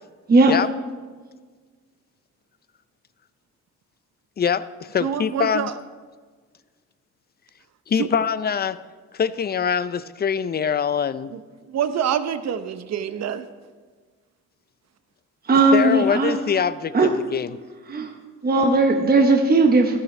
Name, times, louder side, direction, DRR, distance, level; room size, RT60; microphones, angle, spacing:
voice 1, 4.4-5.7 7.9-8.8 9.1-11.3 15.7-17.6, left 7 dB, 30° left, 15 dB, 0.5 m, -23 dB
voice 2, 5.0-5.7 8.0-8.1 11.3-11.4 11.7-13.5, right 8 dB, 60° right, 11 dB, 0.8 m, -26 dB
voice 3, 15.5-16.4 16.9-17.1 17.9-18.1 18.4-20.0, right 3 dB, 30° right, 3 dB, 1.1 m, -17 dB
13.5 x 12.0 x 3.3 m, 1.5 s
cardioid pair, 90°, 30 cm